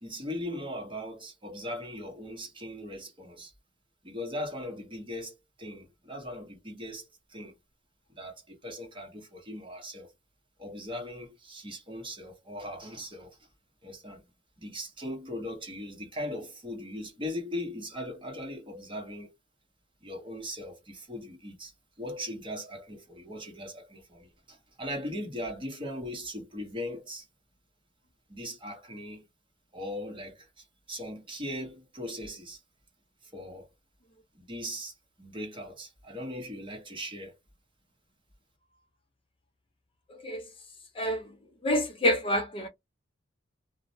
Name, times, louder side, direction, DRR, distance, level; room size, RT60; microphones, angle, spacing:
voice 1, 0.0-3.5 4.0-7.6 8.2-10.1 10.6-13.5 13.8-14.2 14.6-19.3 20.0-27.3 28.3-29.2 29.7-32.6 33.2-33.7 34.3-37.4, left 1 dB, 25° right, 1.0 m, -39 dB
voice 2, 40.1-40.4 41.0-41.3 41.6-42.7, left 1 dB, 30° left, 0.5 m, -27 dB
2.4 x 2.0 x 2.7 m
head